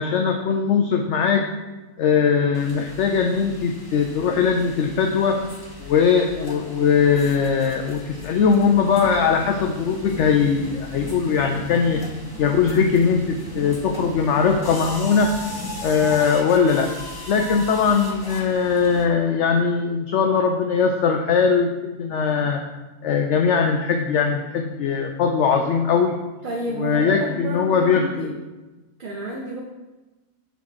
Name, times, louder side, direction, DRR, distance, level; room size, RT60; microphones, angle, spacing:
voice 1, 0.0-1.4 2.0-5.4 5.8-12.0 12.4-15.3 15.8-16.9 17.3-22.6 23.0-26.1 26.8-28.3, left 6 dB, 65° left, 3 dB, 0.8 m, -20 dB
sound 1, 2.5-19.0, left 2 dB, 20° left, 0.6 m, -39 dB
sound 2, 8.8-16.2, equal, 15° right, 1.3 m, -38 dB
voice 2, 26.4-28.3 29.0-29.6, right 1 dB, 40° right, -2 dB, 0.9 m, -30 dB
7.1 x 3.8 x 5.9 m, 1.1 s
omnidirectional pair, 1.5 m